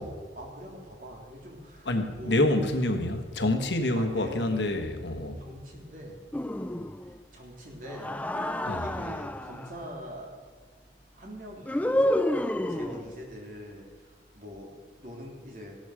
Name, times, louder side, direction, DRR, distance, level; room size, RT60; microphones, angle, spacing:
voice 1, 0.0-2.5 3.9-4.7 5.4-6.2 7.0-10.3 11.1-14.7 15.0-15.8, equal, 50° right, -1 dB, 3.2 m, -43 dB
voice 2, 1.9-5.4 8.6-8.8, left 1 dB, 80° left, 7 dB, 1.4 m, -27 dB
sound 1, 6.3-7.2 7.9-9.7 11.7-13.2, left 1 dB, 10° left, 0.4 m, -29 dB
16.0 x 12.0 x 5.0 m, 1.5 s
head